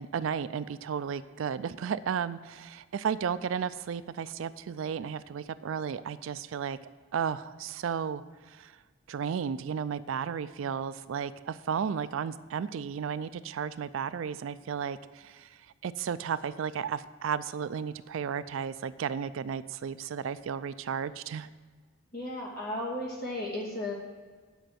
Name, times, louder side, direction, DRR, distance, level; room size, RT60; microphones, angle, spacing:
voice 1, 0.0-6.8 7.1-8.8 9.1-21.5, right 7 dB, 70° right, 15 dB, 0.3 m, -34 dB
voice 2, 22.1-23.9, left 1 dB, 50° left, -3 dB, 2.5 m, -34 dB
9.2 x 5.3 x 7.5 m, 1.5 s
head